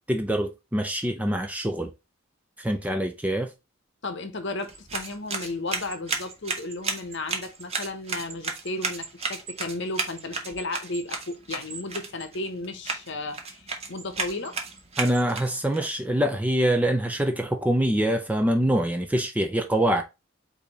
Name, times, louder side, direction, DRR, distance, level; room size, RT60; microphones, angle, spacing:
voice 1, 0.1-1.9 2.6-3.5 15.0-20.0, right 1 dB, 5° right, 0.4 m, -24 dB
voice 2, 4.0-14.6, left 2 dB, 55° left, 0.8 m, -34 dB
sound 1, 4.6-15.8, right 4 dB, 30° right, 0.8 m, -34 dB
4.9 x 2.7 x 3.9 m
head